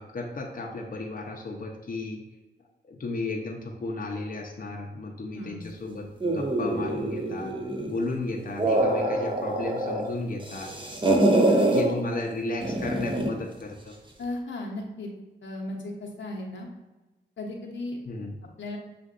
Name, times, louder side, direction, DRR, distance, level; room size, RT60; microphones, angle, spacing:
voice 1, 0.0-2.2 2.8-7.5 7.9-10.7 11.6-14.0 18.1-18.3, left 2 dB, 45° left, 0 dB, 0.7 m, -34 dB
sound 1, 6.2-8.0 8.4-10.1 10.4-11.8 12.6-13.4, right 1 dB, 25° right, 0.8 m, -25 dB
voice 2, 11.5-12.0 14.2-15.1 15.4-16.7 17.4-18.0 18.6-18.8, left 2 dB, 75° left, 0 dB, 0.9 m, -35 dB
7.4 x 2.5 x 2.5 m, 1.1 s
cardioid pair, 60°, 19 cm